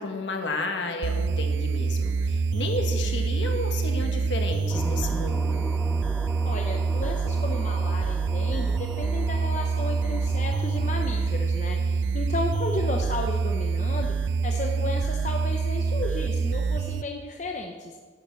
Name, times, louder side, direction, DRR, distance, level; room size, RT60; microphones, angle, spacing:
voice 1, 0.0-5.6, left 2 dB, 70° left, 4 dB, 1.5 m, -32 dB
sound 1, 1.0-17.0, right 4 dB, 65° right, 0.3 m, -26 dB
sound 2, 4.7-11.3, equal, 5° left, 0.4 m, -40 dB
voice 2, 6.4-18.0, left 2 dB, 40° left, 2 dB, 0.7 m, -33 dB
11.0 x 7.2 x 6.8 m, 1.5 s
head